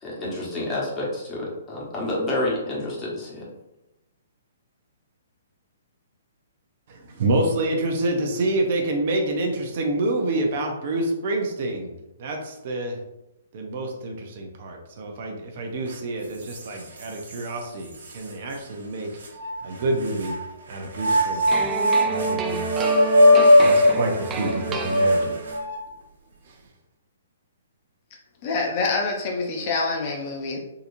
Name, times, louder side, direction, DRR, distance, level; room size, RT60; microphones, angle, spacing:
voice 1, 0.0-3.5, left 1 dB, 25° left, -4 dB, 1.2 m, -29 dB
voice 2, 6.9-11.9 12.2-13.0 13.5-19.1 19.6-20.4 20.7-21.7 22.0-22.7 23.2-25.3 26.5-26.6, right 2 dB, 55° right, 2 dB, 0.7 m, -27 dB
sound 1, 15.9-16.0 16.5-17.4 18.0-18.1 19.2-20.4 20.9-25.9, left 1 dB, 75° right, 1.0 m, -20 dB
sound 2, 21.5-25.6, right 5 dB, 20° right, 0.3 m, -30 dB
voice 3, 28.4-30.6, left 3 dB, 40° left, 1 dB, 0.5 m, -26 dB
3.8 x 2.8 x 2.6 m, 0.92 s
hypercardioid pair, 135°, 0 cm